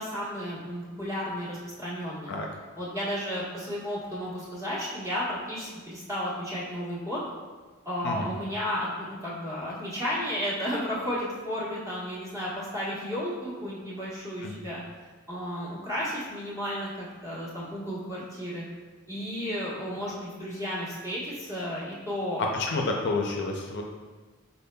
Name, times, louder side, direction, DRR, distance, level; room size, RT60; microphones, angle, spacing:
voice 1, 0.0-2.3 2.8-7.2 7.8-14.8 15.3-18.6 19.1-22.4, equal, 15° right, -8 dB, 1.2 m, -33 dB
voice 2, 22.4-23.8, left 3 dB, 55° left, 1 dB, 0.5 m, -29 dB
5.3 x 4.1 x 2.2 m, 1.4 s
head